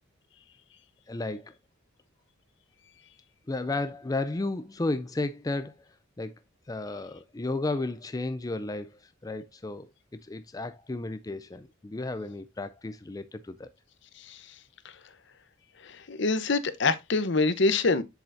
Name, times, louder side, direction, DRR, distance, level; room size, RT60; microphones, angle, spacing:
voice 1, 1.1-1.5 3.5-5.7 6.2-6.3 6.7-9.9 10.2-13.7, left 2 dB, 20° left, 0.4 m, -33 dB
voice 2, 15.8-18.0, left 3 dB, 60° left, 0.8 m, -25 dB
7.6 x 7.1 x 2.6 m
head